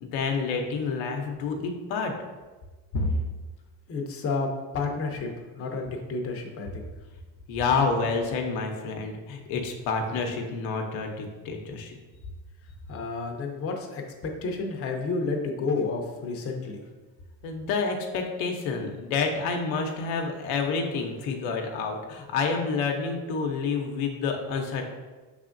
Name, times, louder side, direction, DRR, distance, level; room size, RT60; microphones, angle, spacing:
voice 1, 0.0-2.2 2.9-3.1 7.5-12.0 17.4-24.8, left 4 dB, 85° left, 2 dB, 0.8 m, -28 dB
voice 2, 3.9-4.5 4.7-5.3 5.6-6.9 12.9-16.8, left 3 dB, 30° left, 2 dB, 0.6 m, -30 dB
5.5 x 3.5 x 2.5 m, 1.3 s
cardioid pair, 110°, 45 cm